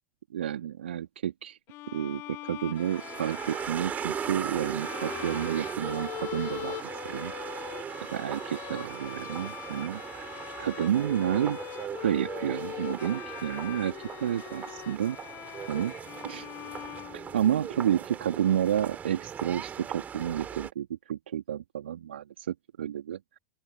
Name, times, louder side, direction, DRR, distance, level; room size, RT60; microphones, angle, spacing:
voice 1, 0.3-1.6 1.9-7.3 8.1-10.3 10.6-11.6 12.0-15.2 15.7-15.9 16.2-16.5 17.3-23.4, right 10 dB, 70° right, 3.2 m, -30 dB
Bowed string instrument, 1.7-17.8, left 18 dB, 40° left, 3.5 m, -42 dB
sound 1, 2.7-20.7, right 8 dB, 25° right, 3.8 m, -39 dB
open air
figure-of-eight pair, 90°, 7 cm